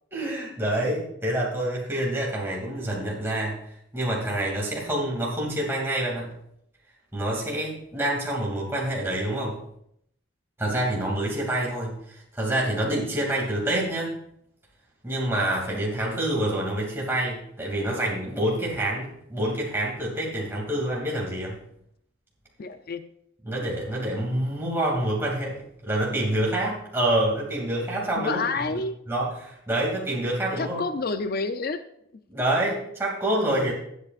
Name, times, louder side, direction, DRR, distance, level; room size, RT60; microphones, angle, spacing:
voice 1, 0.1-3.6 3.9-6.3 7.1-9.6 10.6-14.1 15.0-21.6 23.4-28.6 29.1-30.8 32.3-33.7, right 1 dB, 10° right, -4 dB, 2.5 m, -27 dB
voice 2, 22.6-23.1 28.2-29.0 30.6-31.8, left 3 dB, 45° left, 10 dB, 0.5 m, -29 dB
19.5 x 8.1 x 2.5 m, 0.74 s
head